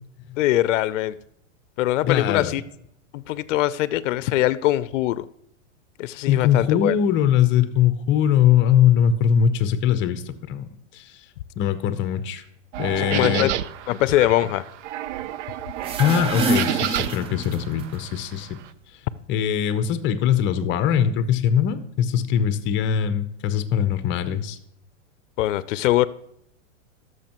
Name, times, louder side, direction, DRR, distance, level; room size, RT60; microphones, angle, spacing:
voice 1, 0.4-1.2 1.8-2.6 3.1-5.3 6.0-6.9 13.0-13.5 13.9-14.6 25.4-26.1, left 14 dB, 70° left, 17 dB, 0.5 m, -22 dB
voice 2, 2.0-2.5 6.3-11.1 11.6-12.4 12.8-13.5 16.0-18.6 19.3-24.6, left 9 dB, 30° left, 12 dB, 0.7 m, -21 dB
sound 1, 12.7-18.6, right 12 dB, 65° right, 0.5 m, -30 dB
sound 2, 15.7-17.8, right 2 dB, 15° right, 0.4 m, -26 dB
13.5 x 6.4 x 3.0 m, 0.72 s
hypercardioid pair, 125°, 38 cm